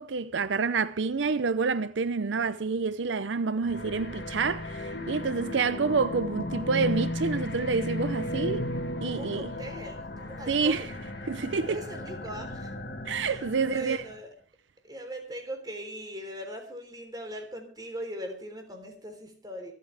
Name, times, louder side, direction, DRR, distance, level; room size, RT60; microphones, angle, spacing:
voice 1, 0.0-8.7 9.0-9.5 10.5-10.8 11.3-11.8 13.1-14.0, right 4 dB, 75° right, 0.6 m, -28 dB
sound 1, 3.6-14.2, left 1 dB, 60° left, 2.4 m, -35 dB
voice 2, 9.0-11.0 11.7-12.8 13.2-14.3 14.8-19.7, right 1 dB, 20° right, 3.7 m, -40 dB
26.0 x 9.2 x 3.5 m
head